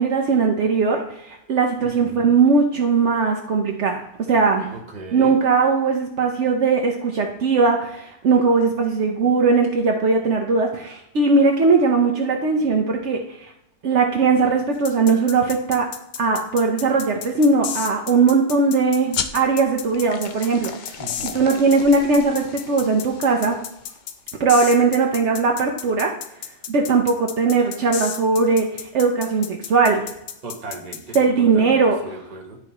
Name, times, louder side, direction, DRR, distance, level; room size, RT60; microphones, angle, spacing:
voice 1, 0.0-4.7 5.1-13.2 13.8-15.9 16.2-20.7 21.2-23.6 24.4-26.1 26.7-28.7 28.9-30.0 31.1-32.1, right 4 dB, 65° right, 1 dB, 1.1 m, -19 dB
voice 2, 1.8-2.3 4.7-5.3 21.0-21.5 30.4-32.6, right 2 dB, 35° right, 1 dB, 1.4 m, -37 dB
sound 1, 14.8-31.2, left 9 dB, 90° left, 1.0 m, -33 dB
sound 2, 19.1-24.2, left 6 dB, 55° left, 0.5 m, -35 dB
11.5 x 4.5 x 3.0 m, 0.78 s
omnidirectional pair, 1.3 m